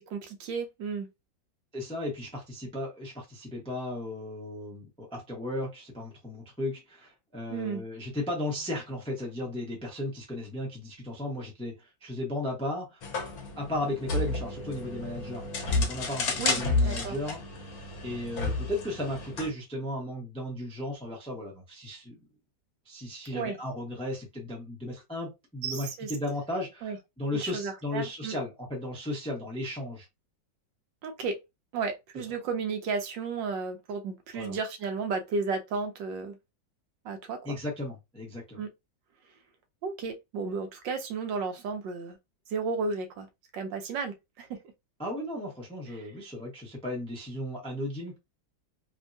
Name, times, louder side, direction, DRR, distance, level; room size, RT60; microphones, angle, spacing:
voice 1, 0.1-1.1 7.5-7.8 16.4-17.2 23.3-23.6 25.6-26.1 26.8-27.0 27.4-28.3 31.0-31.4 31.7-36.4 37.0-37.6 38.6-38.7 39.8-42.2 42.5-43.3 43.5-44.6, right 4 dB, 80° right, 1.4 m, -33 dB
voice 2, 1.7-13.0 13.6-17.4 18.0-22.2 22.9-30.1 34.3-34.6 37.4-38.6 45.0-48.2, left 1 dB, 5° left, 0.6 m, -35 dB
sound 1, 13.0-19.5, left 3 dB, 60° left, 1.2 m, -31 dB
3.5 x 2.2 x 2.6 m
omnidirectional pair, 2.0 m